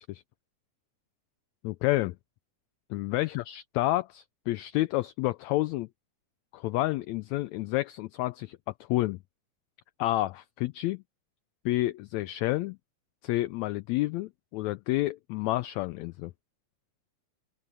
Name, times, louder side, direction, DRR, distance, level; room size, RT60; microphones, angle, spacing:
voice 1, 1.6-2.2 2.9-5.9 6.5-8.6 8.9-9.2 10.0-11.0 11.6-12.8 13.2-16.3, left 17 dB, 80° left, 1.6 m, -29 dB
open air
omnidirectional pair, 3.6 m